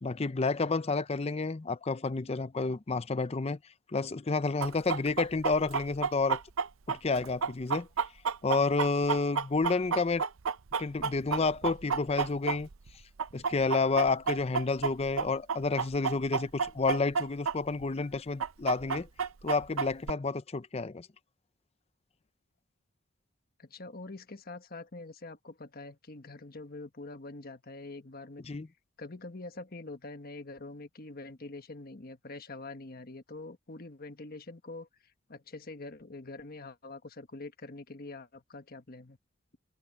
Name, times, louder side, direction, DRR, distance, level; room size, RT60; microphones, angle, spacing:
voice 1, 0.0-3.6 3.9-6.4 6.9-7.9 8.4-10.2 10.8-12.7 13.3-19.1 19.4-21.1 28.5-28.7, left 3 dB, 30° left, 0.5 m, -30 dB
Chicken rooster, 4.6-12.9 13.2-17.5 17.8-17.9 18.4-20.1, right 6 dB, 90° right, 0.6 m, -30 dB
voice 2, 23.6-28.4 29.0-34.9 35.3-39.2, left 2 dB, 50° left, 1.3 m, -45 dB
head